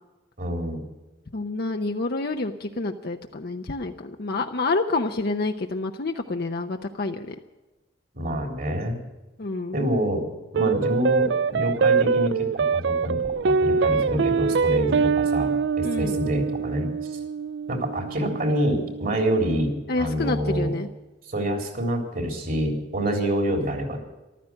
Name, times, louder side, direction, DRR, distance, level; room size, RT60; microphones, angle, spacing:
voice 1, 0.4-0.8 8.1-9.0 9.7-10.3 10.5-16.9 17.7-20.7 21.3-24.0, equal, 55° right, 3 dB, 3.8 m, -26 dB
voice 2, 1.3-7.3 9.4-9.8 15.8-16.2 19.9-20.9, left 3 dB, 60° left, 4 dB, 0.8 m, -28 dB
sound 1, 10.6-19.2, right 5 dB, 75° right, 0.4 m, -24 dB
14.5 x 13.0 x 7.5 m, 1.1 s
head